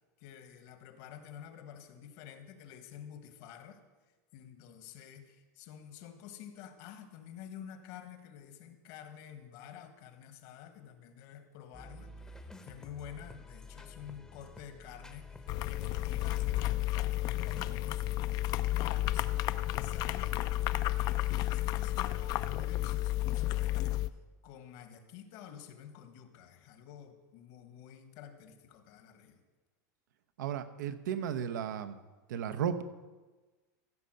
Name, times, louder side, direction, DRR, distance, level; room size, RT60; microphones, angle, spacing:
voice 1, 0.2-3.8 4.3-20.4 20.9-24.0 24.4-29.4, left 9 dB, 60° left, 8 dB, 1.5 m, -50 dB
sound 1, 11.7-16.8 17.3-17.8, left 2 dB, 5° left, 0.8 m, -51 dB
sound 2, 15.5-24.1, left 15 dB, 40° left, 0.4 m, -32 dB
voice 2, 30.4-32.0 32.3-32.8, right 8 dB, 90° right, 12 dB, 0.8 m, -34 dB
15.0 x 5.6 x 7.7 m, 1.3 s
supercardioid pair, 140°, 10 cm